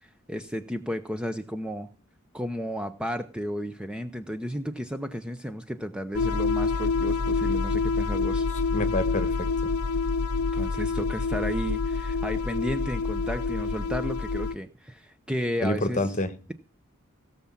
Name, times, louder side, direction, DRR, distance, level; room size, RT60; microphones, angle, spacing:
voice 1, 0.0-1.9 2.3-8.5 10.5-16.0, equal, 5° right, 9 dB, 0.8 m, -33 dB
sound 1, 6.1-14.5, left 4 dB, 85° left, 0.7 m, -27 dB
voice 2, 8.7-9.7 15.6-16.3, left 1 dB, 35° left, 12 dB, 1.5 m, -28 dB
17.5 x 7.2 x 7.3 m, 0.36 s
head